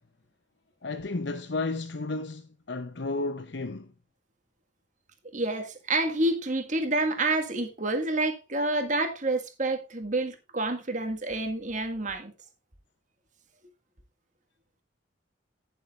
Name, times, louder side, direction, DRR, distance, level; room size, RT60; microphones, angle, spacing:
voice 1, 0.8-3.9, left 3 dB, 65° left, 0.8 m, -33 dB
voice 2, 5.3-12.3, right 2 dB, 40° right, 1.8 m, -28 dB
18.5 x 7.0 x 2.5 m
head